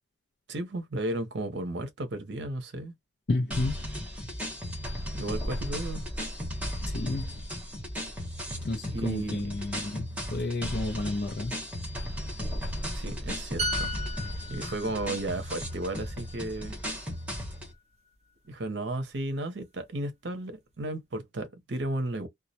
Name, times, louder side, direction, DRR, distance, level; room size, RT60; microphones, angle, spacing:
voice 1, 0.5-2.9 5.1-6.0 8.9-9.5 12.9-13.9 14.5-16.8 18.5-22.3, right 1 dB, 75° right, 0.7 m, -34 dB
voice 2, 3.3-4.0 6.9-7.5 8.5-11.5, left 2 dB, 60° left, 0.5 m, -31 dB
sound 1, 3.5-17.7, equal, 5° right, 0.8 m, -35 dB
sound 2, 13.6-17.2 17.5-17.8, equal, 35° right, 0.5 m, -37 dB
2.2 x 2.0 x 2.7 m
head